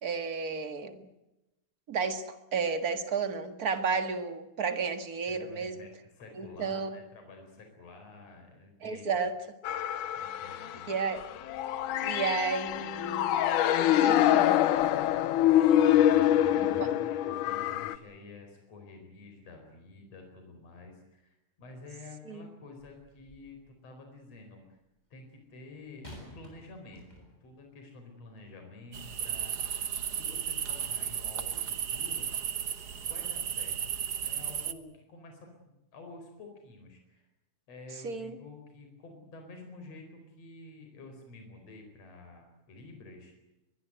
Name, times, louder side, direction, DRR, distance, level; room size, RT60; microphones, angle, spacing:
voice 1, 0.0-1.1 1.9-5.9 6.4-7.0 8.8-9.4 10.9-11.2 11.9-13.4 14.0-14.6 16.8-16.9 22.3-22.5 38.0-38.4, right 5 dB, 35° right, 9 dB, 1.8 m, -32 dB
voice 2, 5.3-9.1 10.2-10.9 16.0-24.8 25.1-29.7 30.1-32.3 33.0-33.8 34.3-37.2 37.7-43.3, left 3 dB, 55° left, 4 dB, 5.5 m, -50 dB
sound 1, 9.6-18.0, left 12 dB, 85° left, 2.5 m, -25 dB
sound 2, 22.8-23.6 26.0-27.6 28.4-28.5, equal, 10° left, 8.0 m, -51 dB
sound 3, 28.9-34.7, right 8 dB, 60° right, 1.1 m, -34 dB
24.0 x 21.5 x 8.0 m, 0.94 s
omnidirectional pair, 3.5 m